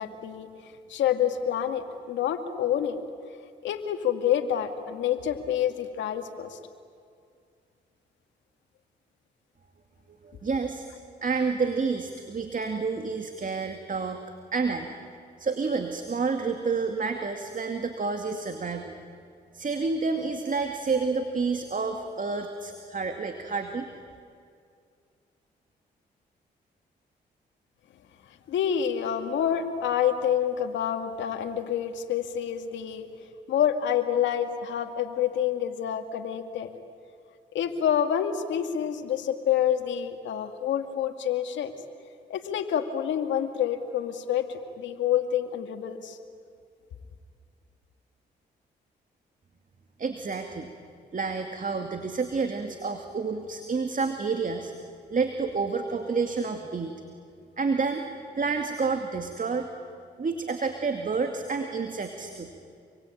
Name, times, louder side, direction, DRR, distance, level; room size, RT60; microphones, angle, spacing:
voice 1, 0.0-3.0 3.6-6.6 28.5-33.1 33.5-36.7 37.5-41.7 42.3-46.2, left 9 dB, 90° left, 7 dB, 2.1 m, -27 dB
voice 2, 10.2-10.9 11.2-14.2 14.5-14.9 15.4-18.9 19.5-23.9 50.0-50.7 51.1-54.7 55.1-56.9 57.6-58.1 58.4-59.7 60.2-62.5, right 4 dB, 45° right, 5 dB, 2.4 m, -29 dB
28.0 x 23.5 x 9.0 m, 2.3 s
cardioid pair, 60°, 19 cm